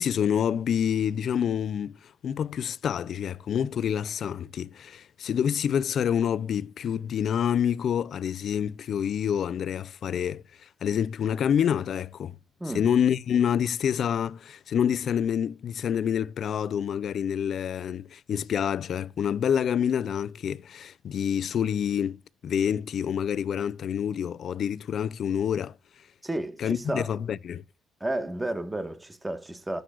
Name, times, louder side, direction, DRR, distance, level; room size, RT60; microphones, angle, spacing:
voice 1, 0.0-12.4 12.7-25.8 26.6-27.6, left 8 dB, 60° left, 0.4 m, -27 dB
voice 2, 26.2-27.1 28.0-29.8, right 1 dB, 15° right, 1.4 m, -32 dB
14.5 x 7.9 x 2.4 m
cardioid pair, 90°, 0 cm